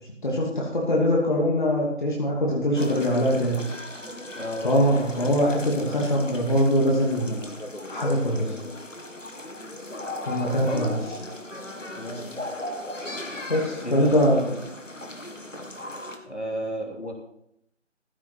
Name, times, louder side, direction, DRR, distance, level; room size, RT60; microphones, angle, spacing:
voice 1, 0.2-3.6 4.6-7.3 7.9-8.5 10.3-11.0 13.5-14.5, equal, 40° left, -3 dB, 2.7 m, -22 dB
sound 1, 2.7-16.2, left 1 dB, 85° left, 2.2 m, -37 dB
voice 2, 4.4-4.7 10.4-10.9 12.0-12.3 13.8-14.6 16.2-17.1, right 1 dB, 60° left, 2 dB, 3.2 m, -33 dB
15.0 x 7.2 x 5.9 m, 0.75 s
figure-of-eight pair, 160°, 37 cm